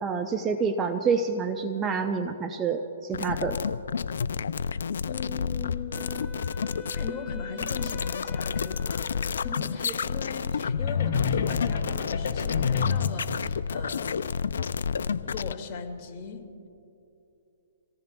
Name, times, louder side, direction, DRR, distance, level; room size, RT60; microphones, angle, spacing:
voice 1, 0.0-3.6 9.8-9.9, right 5 dB, 20° right, 6 dB, 0.6 m, -28 dB
sound 1, 3.1-15.5, left 6 dB, 75° left, 0.4 m, -30 dB
voice 2, 4.6-6.5 6.9-14.3 15.2-16.5, left 6 dB, 30° left, 0 dB, 2.1 m, -39 dB
Wind instrument woodwind instrument, 5.9-10.2, left 2 dB, 5° left, 1.2 m, -45 dB
sound 2, 10.8-13.2, left 6 dB, 60° left, 2.2 m, -28 dB
27.5 x 18.5 x 2.3 m, 2.7 s
hypercardioid pair, 140°, 0 cm